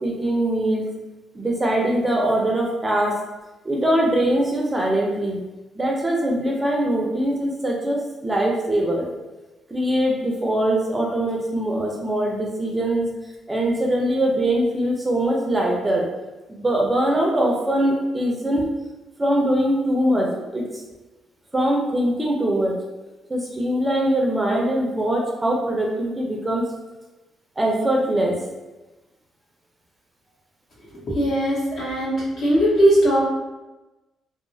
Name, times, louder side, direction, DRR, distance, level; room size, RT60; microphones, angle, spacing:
voice 1, 0.0-0.9 1.3-3.2 3.7-5.4 5.8-9.1 9.7-13.1 13.5-16.0 16.5-18.6 19.2-20.6 21.5-22.8 23.3-26.6 27.6-28.4, right 1 dB, 15° right, -1 dB, 0.5 m, -22 dB
voice 2, 31.1-33.2, right 1 dB, 55° left, -6 dB, 1.2 m, -19 dB
2.9 x 2.1 x 2.6 m, 1.1 s
cardioid pair, 90°, 0 cm